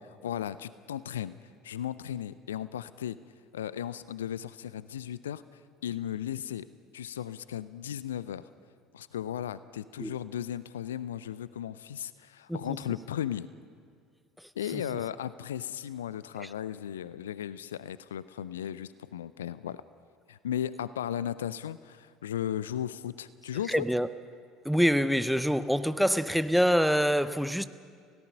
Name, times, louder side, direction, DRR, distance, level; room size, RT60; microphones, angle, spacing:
voice 1, 0.2-1.4 1.6-3.2 3.5-5.4 5.8-6.7 6.9-8.5 8.9-13.5 14.6-19.8 20.3-23.8, left 10 dB, 75° left, 0.5 m, -36 dB
voice 2, 23.7-24.1 24.6-27.6, equal, ahead, 0.8 m, -26 dB
29.0 x 17.5 x 5.4 m
figure-of-eight pair, 65°, 0 cm